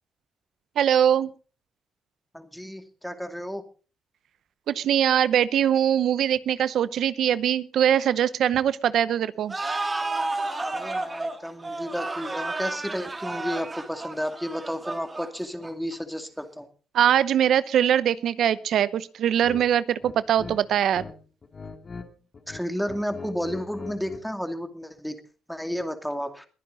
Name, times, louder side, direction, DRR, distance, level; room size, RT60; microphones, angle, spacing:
voice 1, 0.8-1.3 4.7-9.5 16.9-21.1, right 10 dB, 70° right, 16 dB, 0.8 m, -22 dB
voice 2, 2.3-3.6 10.6-16.7 22.5-25.2 25.5-26.5, equal, ahead, 7 dB, 2.4 m, -32 dB
sound 1, 9.5-15.9, right 2 dB, 25° right, 2.9 m, -31 dB
sound 2, 19.4-19.6 20.0-21.1 21.4-22.1 22.3-24.3, left 4 dB, 35° left, 2.6 m, -41 dB
22.0 x 10.0 x 4.0 m, 0.36 s
cardioid pair, 90°, 0 cm